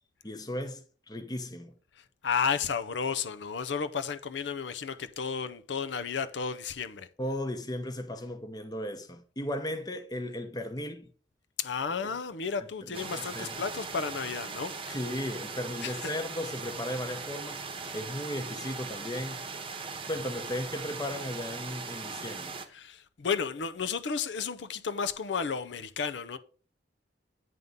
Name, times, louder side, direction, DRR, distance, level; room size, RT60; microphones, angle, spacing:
voice 1, 0.2-1.7 7.2-11.1 12.0-12.1 12.9-13.6 14.9-17.6 17.9-19.5 20.1-22.6, left 1 dB, 20° left, 0.9 m, -36 dB
voice 2, 2.0-7.1 11.6-15.0 15.8-16.1 22.7-26.4, left 6 dB, 80° left, 0.6 m, -33 dB
sound 1, 12.9-22.7, right 4 dB, 30° right, 0.9 m, -39 dB
9.2 x 3.7 x 5.3 m
head